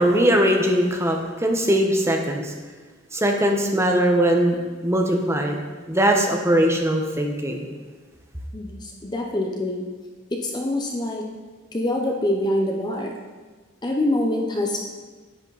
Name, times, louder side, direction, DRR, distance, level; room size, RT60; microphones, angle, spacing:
voice 1, 0.0-2.5 3.1-4.6 4.8-5.6 5.9-7.7, right 1 dB, 15° right, 2 dB, 1.1 m, -20 dB
voice 2, 8.5-9.9 10.3-11.3 11.7-13.1 13.8-14.8, left 1 dB, 20° left, 1 dB, 0.8 m, -25 dB
10.5 x 8.9 x 4.0 m, 1.4 s
head